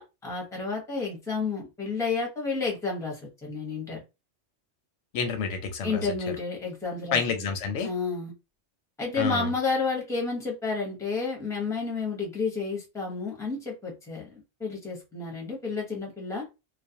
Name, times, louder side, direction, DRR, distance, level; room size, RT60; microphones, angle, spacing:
voice 1, 0.0-4.0 5.8-7.2 7.8-8.3 9.0-16.4, left 4 dB, 5° left, 0.7 m, -31 dB
voice 2, 5.1-6.0 7.1-7.9 9.2-9.5, left 5 dB, 85° left, 0.9 m, -28 dB
2.4 x 2.1 x 2.7 m
omnidirectional pair, 1.2 m